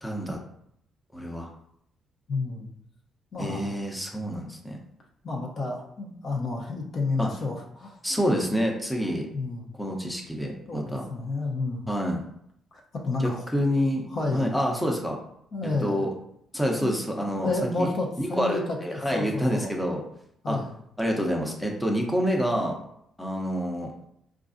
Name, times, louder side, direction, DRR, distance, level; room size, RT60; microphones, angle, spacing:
voice 1, 0.0-0.4 1.1-1.5 3.4-4.8 7.2-7.3 8.0-9.3 9.8-11.0 11.9-12.2 13.2-15.2 15.8-16.1 16.5-17.5 17.8-17.9 18.2-20.0 20.5-20.6 21.0-22.7 23.2-24.0, equal, 5° left, 0 dB, 0.6 m, -27 dB
voice 2, 2.3-2.7 3.3-3.7 5.2-8.0 9.3-9.7 10.7-11.9 13.0-13.4 14.1-14.5 15.5-16.0 16.8-19.7 20.4-20.7, left 3 dB, 55° left, -1 dB, 0.7 m, -31 dB
4.5 x 2.4 x 2.5 m, 0.72 s
cardioid pair, 90°, 0 cm